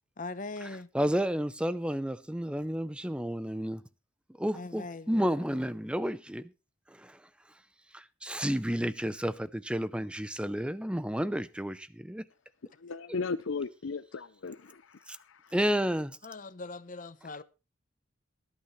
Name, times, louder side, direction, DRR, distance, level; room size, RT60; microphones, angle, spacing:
voice 1, 0.2-0.9 4.5-5.6 16.2-17.4, left 3 dB, 40° left, 0.8 m, -41 dB
voice 2, 0.9-3.8 4.4-6.5 6.9-7.2 7.9-12.2 15.1-15.2 15.5-16.2, equal, 5° right, 0.6 m, -31 dB
voice 3, 12.8-15.5, left 4 dB, 70° left, 0.6 m, -37 dB
19.0 x 11.5 x 3.1 m
head